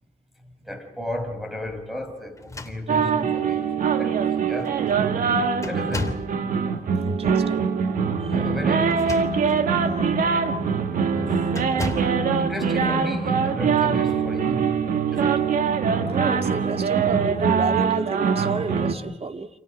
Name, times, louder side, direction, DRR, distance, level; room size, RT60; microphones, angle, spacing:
voice 1, 0.4-4.8 5.7-6.2 7.0-7.1 8.1-9.3 11.1-11.4 11.8-15.5, left 1 dB, ahead, 6.3 m, -34 dB
sound 1, 2.3-3.3 4.1-4.2 4.6-5.0 5.6-6.4 8.8-9.6 10.2-10.4 11.5-12.2, left 2 dB, 20° left, 3.1 m, -34 dB
sound 2, 2.9-18.9, right 6 dB, 85° right, 2.0 m, -23 dB
voice 2, 7.0-7.7 8.2-8.4 9.8-10.6 16.0-19.5, right 4 dB, 45° right, 2.1 m, -31 dB
29.5 x 28.0 x 5.4 m
cardioid pair, 75°, 14 cm